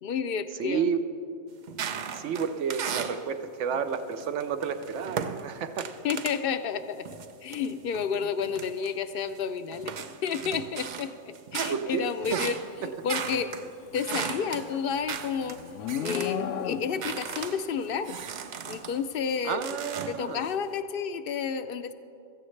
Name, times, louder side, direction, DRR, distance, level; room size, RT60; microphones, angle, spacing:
voice 1, 0.0-0.9 6.0-7.1 7.4-9.9 10.2-12.6 13.0-15.6 16.0-18.1 18.7-19.8 20.1-21.9, left 6 dB, 60° left, 10 dB, 0.6 m, -31 dB
voice 2, 0.6-1.0 2.1-5.9 11.7-12.5 12.8-12.9 19.4-20.5, right 6 dB, 75° right, 9 dB, 1.0 m, -31 dB
sound 1, 1.7-3.3 3.7-6.4 7.0-9.4 9.7-16.4 16.7-19.0 19.5-20.5, right 7 dB, 55° right, 0.5 m, -37 dB
Livestock farm animals working animals, 14.0-17.2, left 9 dB, 85° left, 0.9 m, -35 dB
16.5 x 14.5 x 3.2 m, 2.6 s
omnidirectional pair, 1.2 m